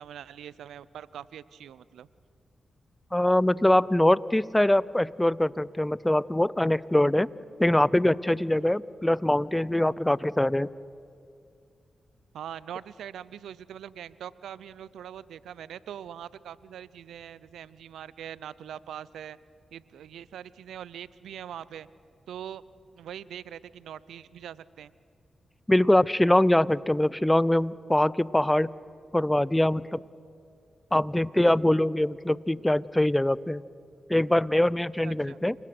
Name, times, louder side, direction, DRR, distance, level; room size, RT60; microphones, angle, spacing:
voice 1, 0.0-2.1 12.3-19.4 19.7-21.9 22.3-24.9 35.0-35.4, right 9 dB, 85° right, 19 dB, 0.6 m, -42 dB
voice 2, 3.1-7.3 7.6-10.7 25.7-28.7 29.1-30.0 30.9-33.6 34.1-35.6, left 1 dB, 15° left, 20 dB, 0.7 m, -23 dB
29.5 x 24.0 x 6.1 m, 2.4 s
supercardioid pair, 40°, 0 cm